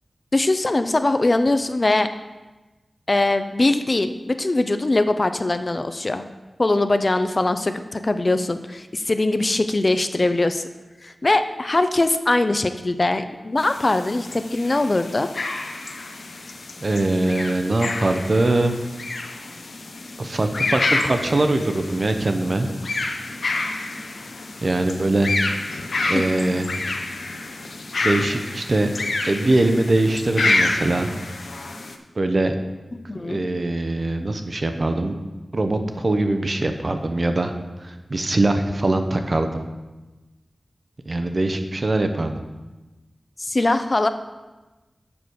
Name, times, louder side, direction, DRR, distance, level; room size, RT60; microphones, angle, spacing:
voice 1, 0.3-2.1 3.1-6.3 6.6-10.6 11.0-15.3 32.9-33.4 43.4-44.1, left 2 dB, 40° left, 9 dB, 0.5 m, -21 dB
sound 1, 13.6-32.0, left 2 dB, 80° left, 0.7 m, -28 dB
voice 2, 16.8-18.8 20.2-22.7 24.6-25.3 26.0-26.7 28.0-28.9 29.2-31.1 32.2-32.5 33.2-35.2 35.5-37.5 37.8-39.7 41.1-42.4, right 2 dB, 50° right, 6 dB, 0.8 m, -22 dB
7.0 x 5.1 x 6.3 m, 1.1 s
wide cardioid pair, 65°, 0 cm